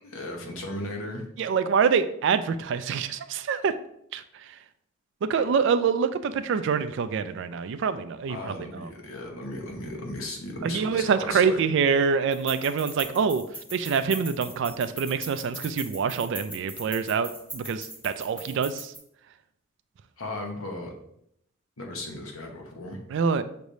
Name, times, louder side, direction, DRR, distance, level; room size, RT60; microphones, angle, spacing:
voice 1, 0.0-1.2 8.3-11.6 20.2-20.9 21.8-23.0, left 1 dB, 85° left, 2 dB, 1.0 m, -36 dB
voice 2, 1.4-3.7 4.1-4.2 5.3-8.9 10.6-13.4 13.7-18.9 23.1-23.4, right 6 dB, 60° right, 11 dB, 0.3 m, -25 dB
sound 1, 12.3-19.0, right 1 dB, 5° left, 1.5 m, -39 dB
6.0 x 3.3 x 2.7 m, 0.72 s
head